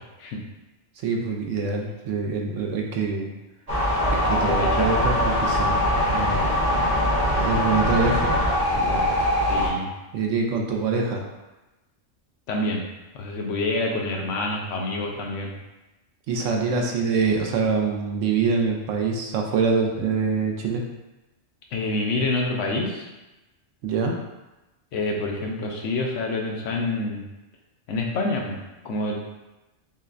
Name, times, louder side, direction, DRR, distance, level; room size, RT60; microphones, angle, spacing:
voice 1, 1.0-3.3 4.1-5.8 6.1-6.5 7.3-8.3 8.7-9.1 10.1-11.2 16.3-20.8 23.8-24.2, right 4 dB, 75° right, 1 dB, 0.9 m, -25 dB
sound 1, 3.7-9.7, left 1 dB, 30° right, 1.0 m, -22 dB
voice 2, 4.4-4.9 9.5-9.9 12.5-12.8 13.1-15.5 21.7-23.1 24.9-27.2 27.9-28.6 28.8-29.4, left 2 dB, 75° left, 0 dB, 0.9 m, -27 dB
5.5 x 2.1 x 2.5 m, 1.0 s
omnidirectional pair, 1.3 m